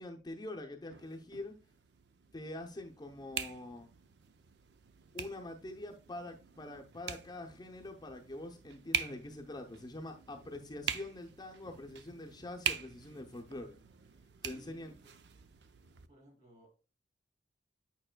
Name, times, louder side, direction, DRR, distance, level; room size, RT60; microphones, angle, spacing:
voice 1, 0.0-1.6 2.3-3.9 5.1-13.8 14.4-14.9, left 1 dB, 25° left, 0.6 m, -45 dB
sound 1, 0.9-16.1, right 8 dB, 70° right, 0.6 m, -43 dB
voice 2, 14.5-15.1 16.1-16.9, right 1 dB, 45° right, 3.6 m, -60 dB
8.9 x 5.3 x 2.2 m
head